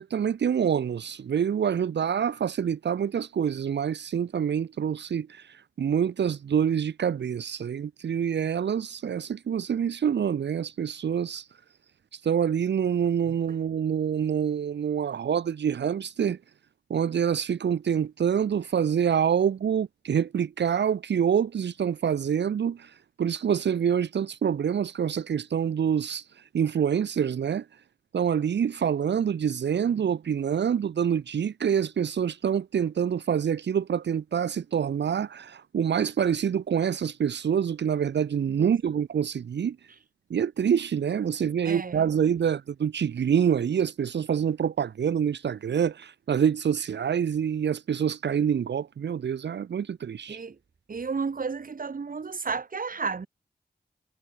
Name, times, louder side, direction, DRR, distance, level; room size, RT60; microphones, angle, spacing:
voice 1, 0.0-11.5 12.1-16.4 16.9-27.7 28.1-39.8 40.3-50.4, right 8 dB, 75° right, 0.7 m, -26 dB
voice 2, 41.6-42.1 50.3-50.6 50.9-53.3, right 5 dB, 50° right, 1.1 m, -32 dB
cardioid pair, 50°, 18 cm